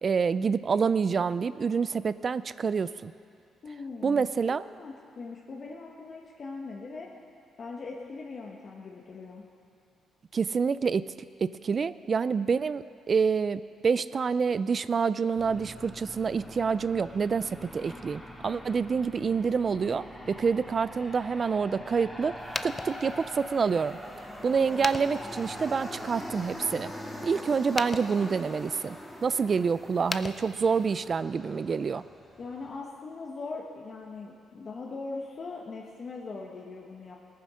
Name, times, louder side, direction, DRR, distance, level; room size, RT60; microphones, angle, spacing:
voice 1, 0.0-3.1 4.0-4.6 10.3-11.1 11.4-22.3 22.6-24.0 24.4-26.9 27.2-29.0 29.2-32.0, right 5 dB, 40° right, 15 dB, 0.3 m, -27 dB
voice 2, 3.6-7.1 7.6-9.4 24.5-24.8 32.4-37.2, left 3 dB, 45° left, -2 dB, 1.3 m, -40 dB
Aircraft, 15.3-32.8, equal, 5° left, 2.3 m, -43 dB
sound 1, 22.4-31.1, left 3 dB, 25° left, 0.5 m, -41 dB
sound 2, 23.6-28.7, equal, 25° right, 4.2 m, -53 dB
18.0 x 9.5 x 6.3 m, 2.3 s
cardioid pair, 90°, 0 cm